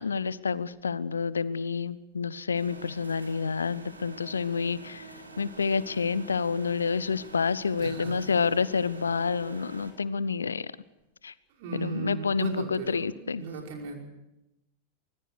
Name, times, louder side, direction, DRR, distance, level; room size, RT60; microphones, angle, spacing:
voice 1, 0.0-10.7 11.2-11.3 11.7-13.4, left 5 dB, 75° left, 19 dB, 0.7 m, -29 dB
sound 1, 2.5-9.9, right 3 dB, 80° right, 3.7 m, -47 dB
voice 2, 7.8-8.3 11.5-14.0, right 5 dB, 50° right, 1 dB, 5.3 m, -37 dB
25.0 x 20.0 x 6.4 m, 0.90 s
figure-of-eight pair, 90°, 0 cm